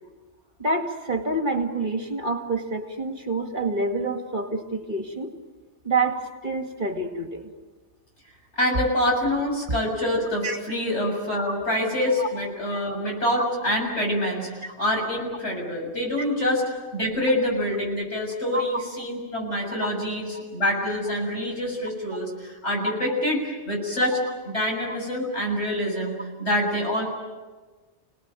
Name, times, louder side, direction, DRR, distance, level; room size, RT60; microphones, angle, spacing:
voice 1, 0.6-5.3 5.8-7.5 10.4-10.6 12.2-12.3 12.7-12.8 13.3-13.5 18.5-18.7, right 2 dB, 45° right, 4 dB, 2.4 m, -27 dB
voice 2, 8.5-27.0, left 1 dB, 70° left, -1 dB, 7.5 m, -26 dB
29.0 x 19.0 x 9.1 m, 1.3 s
omnidirectional pair, 1.2 m